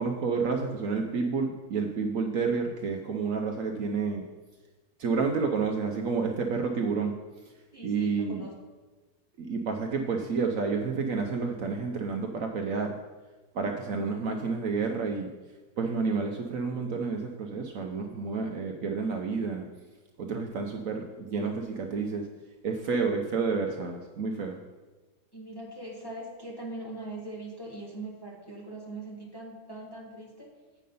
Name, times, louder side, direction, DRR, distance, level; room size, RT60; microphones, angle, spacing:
voice 1, 0.0-4.2 5.0-7.1 7.8-8.4 9.4-13.0 13.5-15.3 15.8-19.7 20.2-22.2 22.6-24.6, right 4 dB, 65° right, 3 dB, 0.9 m, -30 dB
voice 2, 7.7-8.5 25.3-30.5, right 2 dB, 15° left, -2 dB, 1.0 m, -41 dB
8.4 x 5.2 x 5.4 m, 1.3 s
omnidirectional pair, 1.8 m